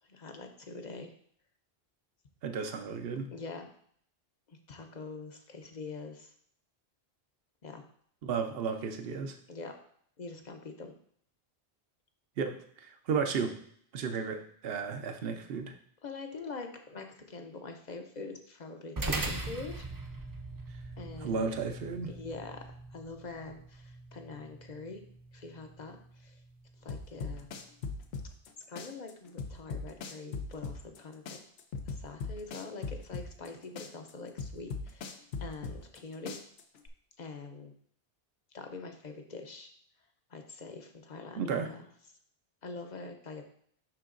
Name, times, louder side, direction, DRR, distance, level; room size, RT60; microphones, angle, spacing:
voice 1, 0.1-1.1 3.3-3.7 4.5-6.3 7.6-7.8 9.5-9.7 10.2-10.9 16.0-19.9 21.0-21.4 22.1-25.0 25.3-26.3 26.8-27.5 28.7-31.4 31.9-35.1 35.4-36.3 37.2-37.7 38.5-39.7 40.3-41.8 42.6-43.4, left 3 dB, 45° left, 5 dB, 0.8 m, -44 dB
voice 2, 2.4-3.3 8.2-9.4 12.4-13.6 13.9-15.8 21.2-22.1 41.4-41.7, right 5 dB, 65° right, 6 dB, 0.9 m, -33 dB
sound 1, 19.0-27.6, right 2 dB, 25° right, 0.4 m, -41 dB
sound 2, 26.9-28.5 28.8-31.0 31.3-33.5 33.8-36.0 36.3-36.9, left 4 dB, 80° left, 1.0 m, -38 dB
10.5 x 3.8 x 2.5 m, 0.63 s
omnidirectional pair, 1.1 m